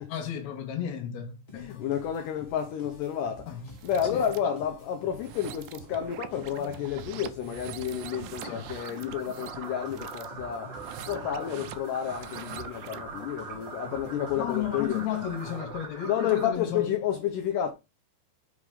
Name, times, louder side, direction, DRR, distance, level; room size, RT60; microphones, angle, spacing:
voice 1, 0.0-1.9 3.5-3.7 4.0-4.5 8.4-8.7 11.4-11.5 14.3-16.9, left 9 dB, 60° left, 2.3 m, -34 dB
voice 2, 1.5-10.8 11.1-15.1 16.1-17.7, left 9 dB, 75° left, 2.1 m, -31 dB
sound 1, 1.5-16.0, equal, 15° left, 2.0 m, -50 dB
sound 2, 3.7-4.4 5.1-13.1, right 13 dB, 80° right, 2.3 m, -44 dB
sound 3, 7.9-16.5, right 4 dB, 25° right, 3.1 m, -42 dB
7.2 x 4.8 x 3.5 m
omnidirectional pair, 4.3 m